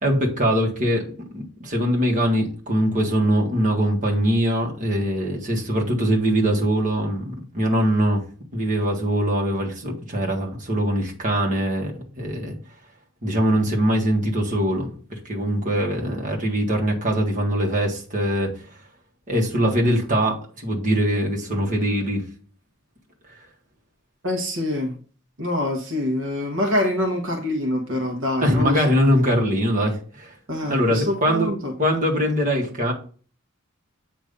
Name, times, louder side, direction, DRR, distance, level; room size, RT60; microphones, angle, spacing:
voice 1, 0.0-8.2 8.5-12.6 13.2-14.9 15.3-18.5 19.3-22.2 28.4-30.3 30.7-31.5 31.8-32.9, equal, 40° right, -1 dB, 1.7 m, -22 dB
voice 2, 24.2-25.0 25.4-28.8 30.5-31.7, left 1 dB, 65° right, 1 dB, 1.3 m, -25 dB
8.4 x 3.1 x 5.2 m, 0.40 s
head